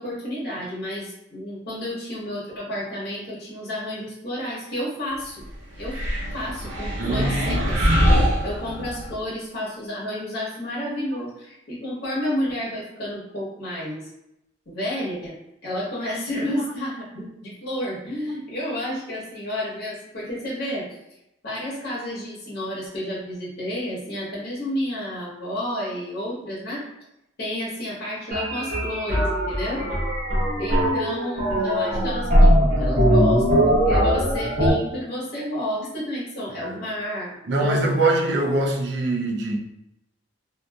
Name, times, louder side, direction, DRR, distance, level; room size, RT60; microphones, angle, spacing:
voice 1, 0.0-5.3 5.8-6.0 6.3-7.9 8.4-14.1 14.7-15.4 15.6-20.9 21.4-26.8 27.4-29.8 30.6-38.1, left 1 dB, 60° left, 1.0 m, -31 dB
sound 1, 5.8-9.1, equal, 90° right, 0.8 m, -23 dB
voice 2, 7.0-7.6 36.6-36.8 37.5-39.6, right 2 dB, 65° right, 0.4 m, -23 dB
sound 2, 28.3-34.7, equal, 40° right, 0.9 m, -20 dB
2.7 x 2.6 x 2.3 m
head